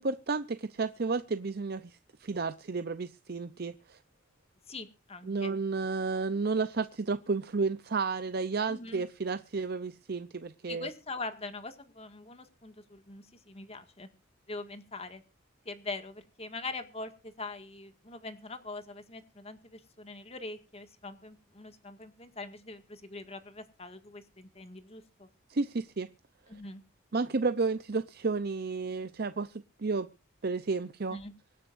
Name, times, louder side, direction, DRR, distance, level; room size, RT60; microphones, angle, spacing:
voice 1, 0.0-4.0 5.3-10.9 25.5-26.1 27.1-30.1 30.4-31.2, right 4 dB, 50° right, 0.7 m, -32 dB
voice 2, 4.7-5.5 8.7-9.0 10.7-14.1 14.5-15.2 15.7-25.3 26.5-26.8 31.1-31.3, left 3 dB, 30° left, 1.9 m, -43 dB
25.0 x 10.0 x 2.6 m
head